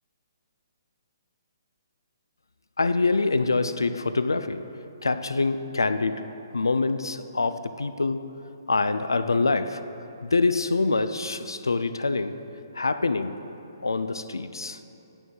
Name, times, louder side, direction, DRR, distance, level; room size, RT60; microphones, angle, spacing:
voice 1, 2.8-4.7 5.0-6.2 6.5-8.3 8.7-9.8 10.2-12.4 12.7-13.4 13.8-14.8, left 3 dB, 85° left, 12 dB, 0.4 m, -25 dB
9.0 x 4.7 x 5.5 m, 2.8 s
figure-of-eight pair, 135°, 2 cm